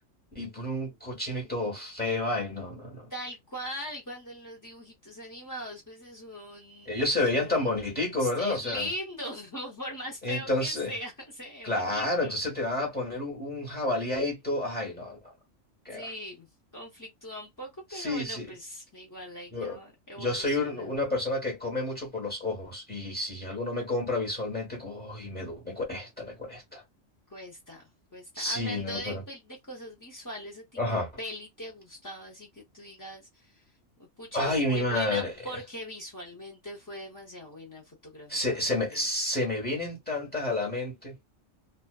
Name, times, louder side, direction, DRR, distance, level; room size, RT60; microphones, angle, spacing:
voice 1, 0.3-3.1 6.9-8.9 10.2-10.9 11.6-15.2 15.8-16.1 17.9-18.5 19.5-19.8 20.2-26.8 28.3-29.2 30.8-31.1 34.3-35.3 38.3-41.1, left 2 dB, 10° left, 1.0 m, -30 dB
voice 2, 3.1-7.8 8.2-12.4 15.9-16.5 16.7-20.9 27.3-30.7 31.2-33.6 34.2-38.6 38.9-39.0, equal, 30° left, 0.3 m, -40 dB
2.4 x 2.3 x 2.2 m
omnidirectional pair, 1.3 m